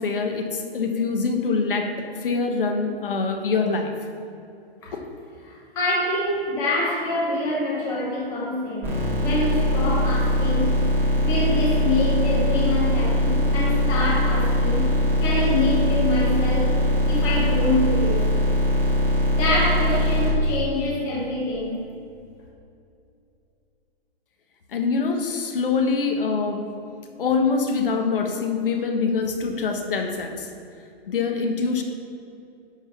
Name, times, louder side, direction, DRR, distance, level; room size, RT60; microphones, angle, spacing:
voice 1, 0.0-3.9 4.9-5.0 24.7-26.7 27.2-30.5 31.1-31.8, left 4 dB, 60° left, 4 dB, 1.3 m, -24 dB
voice 2, 5.4-10.7 11.2-14.9 15.2-16.7 17.1-18.3 19.4-21.8, left 1 dB, 10° left, -5 dB, 0.9 m, -25 dB
sound 1, 8.8-20.3, left 1 dB, 5° right, 2.0 m, -21 dB
11.0 x 4.0 x 7.0 m, 2.6 s
hypercardioid pair, 175°, 31 cm